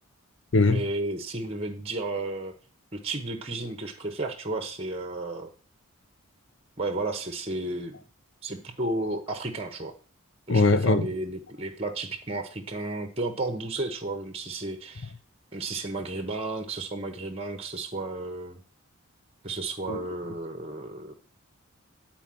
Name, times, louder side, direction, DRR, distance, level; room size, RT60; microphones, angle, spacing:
voice 1, 0.6-2.5 2.9-5.5 6.8-8.0 8.4-9.9 10.5-15.1 15.5-18.6 19.4-21.1, right 2 dB, 25° right, 1.0 m, -33 dB
voice 2, 10.5-11.0 19.9-20.0, left 3 dB, 55° left, 0.7 m, -20 dB
10.0 x 4.4 x 7.6 m
head